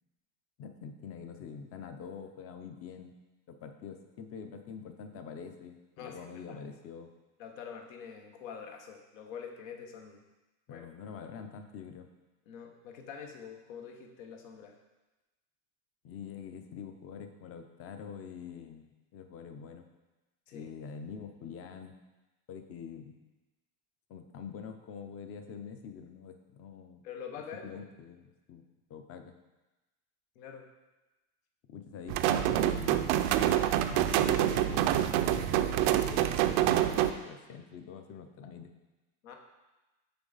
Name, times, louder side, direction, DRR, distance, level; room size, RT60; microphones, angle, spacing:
voice 1, 0.6-3.2 3.5-7.1 10.7-12.1 16.0-18.9 19.1-19.8 20.5-22.0 22.5-23.2 24.1-27.0 27.6-28.6 28.9-29.3 31.7-33.1 33.9-38.7, left 6 dB, 35° left, 7 dB, 0.6 m, -45 dB
voice 2, 6.0-6.6 7.4-10.2 10.7-10.9 12.5-14.7 20.5-20.7 27.0-27.9 30.3-30.7 39.2-39.4, left 7 dB, 75° left, 3 dB, 1.1 m, -45 dB
sound 1, 32.1-37.1, right 12 dB, 55° right, 0.5 m, -26 dB
6.8 x 4.6 x 4.0 m, 1.1 s
supercardioid pair, 135°, 41 cm